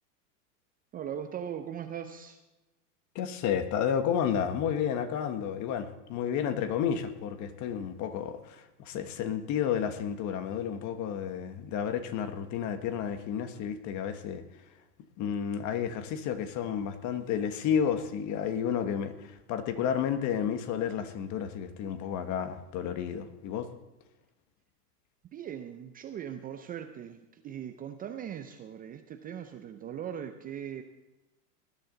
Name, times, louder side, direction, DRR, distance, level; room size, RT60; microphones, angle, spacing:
voice 1, 0.9-2.4 25.3-30.8, right 9 dB, 20° right, 7 dB, 0.6 m, -39 dB
voice 2, 3.1-14.4 15.2-23.7, left 8 dB, 35° left, 10 dB, 1.4 m, -31 dB
19.0 x 11.0 x 3.9 m, 1.0 s
hypercardioid pair, 120°, 48 cm